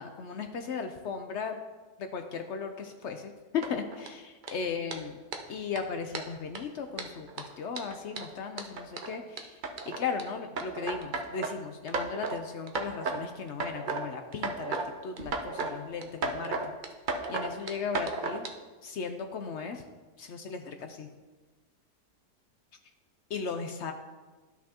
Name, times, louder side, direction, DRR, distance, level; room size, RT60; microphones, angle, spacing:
voice 1, 0.0-1.6 2.0-5.2 5.5-9.6 9.9-14.8 15.0-16.7 17.3-18.5 18.8-19.8 20.2-21.1 23.3-23.9, left 5 dB, 65° left, 6 dB, 0.7 m, -36 dB
sound 1, 3.6-4.1 4.4-4.5 4.9-5.0 5.3-5.4 5.8-5.9 6.1-6.6 7.0-10.2 10.6-11.5 11.9-12.4 12.7-13.2 13.5-14.0 14.3-14.9 15.2-15.7 16.0-18.5, right 3 dB, 55° right, 0.5 m, -34 dB
12.5 x 5.9 x 2.9 m, 1.3 s
omnidirectional pair, 1.7 m